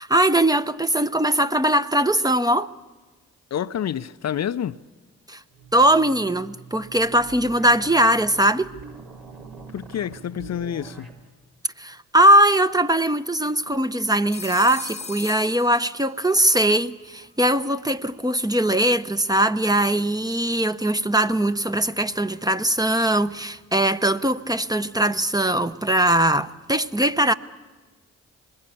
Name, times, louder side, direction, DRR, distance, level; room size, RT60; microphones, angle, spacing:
voice 1, 0.0-2.7 5.3-5.4 5.7-8.7 11.8-27.3, right 1 dB, 10° right, 0.9 m, -20 dB
voice 2, 3.5-4.8 9.7-11.1, left 9 dB, 50° left, 0.7 m, -28 dB
sound 1, 5.5-11.2, right 4 dB, 70° right, 4.3 m, -43 dB
Telephone, 14.3-16.4, left 4 dB, 20° left, 1.0 m, -38 dB
25.0 x 21.0 x 8.6 m
hypercardioid pair, 45°, 35 cm